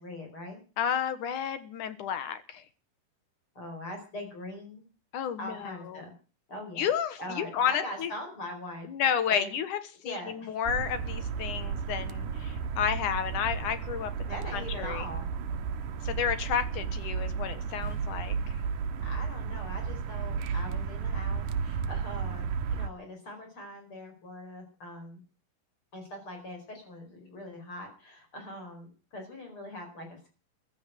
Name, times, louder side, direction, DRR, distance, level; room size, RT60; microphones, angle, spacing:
voice 1, 0.0-0.6 3.6-4.8 5.4-6.1 6.5-6.9 7.2-8.9 9.3-9.5 10.0-10.6 14.3-15.2 19.0-25.2 25.9-30.3, left 1 dB, 40° left, 3 dB, 5.6 m, -41 dB
voice 2, 0.8-2.6 5.1-6.0 6.8-8.1 8.9-15.1 16.0-18.4, left 8 dB, 70° left, 12 dB, 2.8 m, -31 dB
sound 1, 10.6-22.9, right 6 dB, 80° right, 2.7 m, -33 dB
15.5 x 10.5 x 8.2 m, 0.37 s
omnidirectional pair, 3.9 m